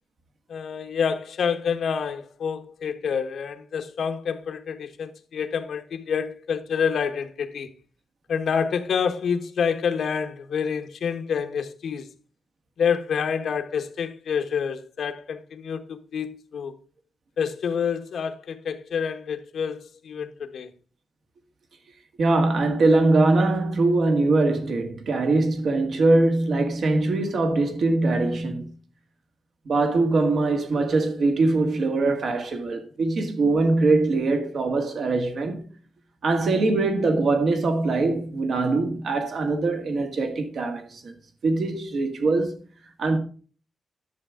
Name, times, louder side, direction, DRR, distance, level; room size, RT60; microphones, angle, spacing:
voice 1, 0.5-7.7 8.3-12.1 12.8-16.7 17.4-20.7, left 6 dB, 70° left, 1.1 m, -28 dB
voice 2, 22.2-28.7 29.7-35.7 36.2-41.1 41.4-42.5 43.0-43.2, right 3 dB, 60° right, 1.7 m, -22 dB
11.0 x 6.6 x 3.6 m
wide cardioid pair, 155°, 0 cm